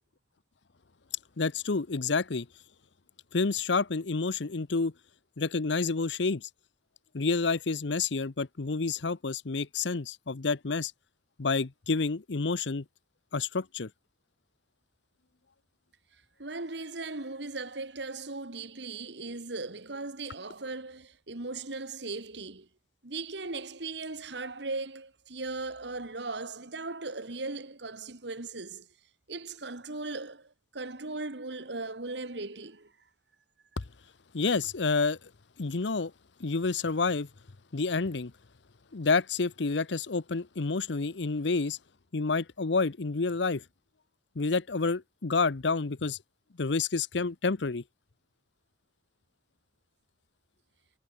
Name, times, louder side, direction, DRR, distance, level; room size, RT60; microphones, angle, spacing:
voice 1, 1.4-2.5 3.3-4.9 5.4-6.5 7.1-10.9 11.4-12.8 13.3-13.9 33.8-33.9 34.3-35.2 35.6-36.1 36.4-37.3 37.7-38.3 38.9-41.8 42.1-43.6 44.4-46.2 46.6-47.8, left 4 dB, 75° left, 0.8 m, -29 dB
voice 2, 16.4-22.7 23.0-28.9 29.3-32.9, right 3 dB, 70° right, 2.0 m, -38 dB
head